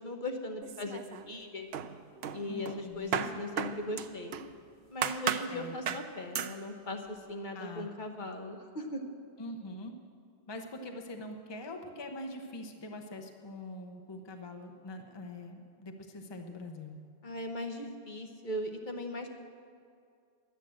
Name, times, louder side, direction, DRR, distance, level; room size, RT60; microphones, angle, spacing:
voice 1, 0.0-1.7 2.3-4.4 4.9-9.0 17.2-19.3, left 1 dB, 50° left, 4 dB, 1.1 m, -38 dB
sound 1, 0.6-1.4 1.7-4.5 5.0-5.5 5.9-6.1 6.3-6.6, right 8 dB, 75° right, 0.8 m, -35 dB
voice 2, 2.5-3.4 5.5-6.0 7.5-7.9 9.4-9.9 10.5-17.0, left 1 dB, 25° left, 4 dB, 0.8 m, -43 dB
11.5 x 9.3 x 7.6 m, 2.3 s
omnidirectional pair, 1.0 m